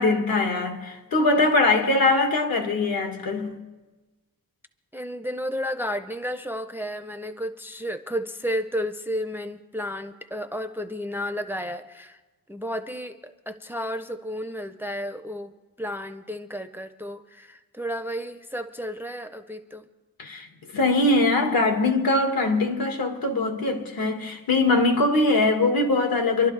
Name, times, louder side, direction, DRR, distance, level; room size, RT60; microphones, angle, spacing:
voice 1, 0.0-3.5 20.2-20.5 20.7-26.5, left 2 dB, 75° left, 1.7 m, -22 dB
voice 2, 4.9-12.2 12.5-19.9, equal, 5° right, 0.5 m, -32 dB
26.5 x 12.0 x 3.2 m
wide cardioid pair, 155°, 36 cm